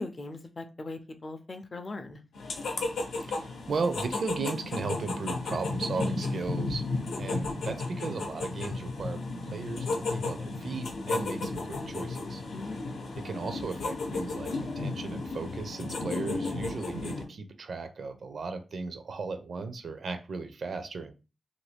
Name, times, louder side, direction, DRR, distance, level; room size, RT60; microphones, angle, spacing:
voice 1, 0.0-2.2 12.5-12.8, left 2 dB, 35° left, 8 dB, 0.4 m, -39 dB
sound 1, 2.3-17.2, left 3 dB, 80° left, 0.7 m, -34 dB
voice 2, 3.3-6.8 7.2-12.4 13.2-21.1, right 4 dB, 60° right, 8 dB, 0.4 m, -36 dB
3.0 x 2.6 x 3.3 m, 0.30 s
wide cardioid pair, 145°, 0 cm